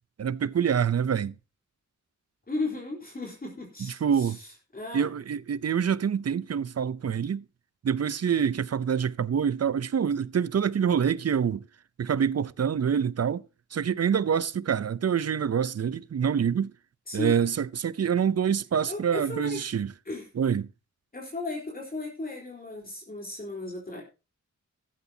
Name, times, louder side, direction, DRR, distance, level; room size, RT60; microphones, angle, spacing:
voice 1, 0.2-1.3 4.0-4.4 4.9-7.4 7.8-11.7 12.0-13.4 13.7-16.7 17.1-19.9 20.4-20.7, right 7 dB, 55° right, 0.7 m, -26 dB
voice 2, 2.5-5.1 17.1-17.4 18.9-19.6 20.1-20.3 21.1-24.0, left 2 dB, 30° left, 4.1 m, -35 dB
15.5 x 12.0 x 2.9 m
wide cardioid pair, 90°, 30 cm